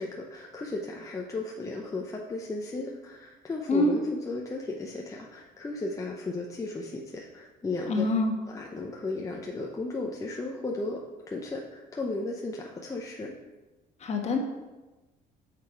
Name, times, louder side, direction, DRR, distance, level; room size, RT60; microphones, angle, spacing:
voice 1, 0.0-8.1 8.5-11.0 11.3-13.3, left 2 dB, 20° left, -1 dB, 0.7 m, -35 dB
voice 2, 7.9-8.3 14.0-14.4, left 2 dB, 40° left, 2 dB, 1.3 m, -25 dB
6.7 x 5.0 x 4.6 m, 1.1 s
cardioid pair, 110°, 17 cm